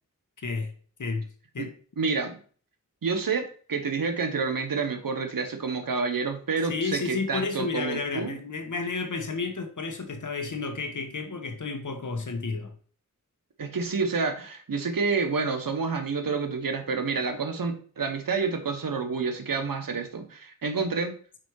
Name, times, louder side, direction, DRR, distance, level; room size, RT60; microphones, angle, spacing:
voice 1, 0.4-0.7 1.0-1.3 1.5-1.7 6.7-12.7, left 4 dB, 65° left, 1.2 m, -31 dB
voice 2, 2.0-2.4 3.0-8.4 13.6-21.1, right 4 dB, 90° right, 1.0 m, -29 dB
5.1 x 4.5 x 4.6 m
wide cardioid pair, 60°, 33 cm